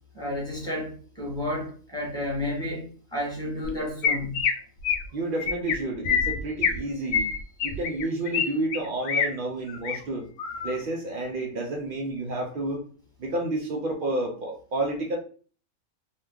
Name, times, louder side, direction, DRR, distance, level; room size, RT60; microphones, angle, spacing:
voice 1, 0.1-4.4, left 1 dB, 5° left, 0.9 m, -31 dB
Chirp tweet, 3.6-3.7 4.0-4.5 4.8-5.1 5.4-5.7 6.0-6.8 7.1-8.4 8.7-9.3 9.7-10.0 10.4-10.7, left 6 dB, 85° left, 1.1 m, -25 dB
voice 2, 5.1-7.3 7.6-10.3 10.6-12.8 13.2-15.2, right 2 dB, 80° right, 0.4 m, -30 dB
2.7 x 2.2 x 3.5 m
omnidirectional pair, 1.5 m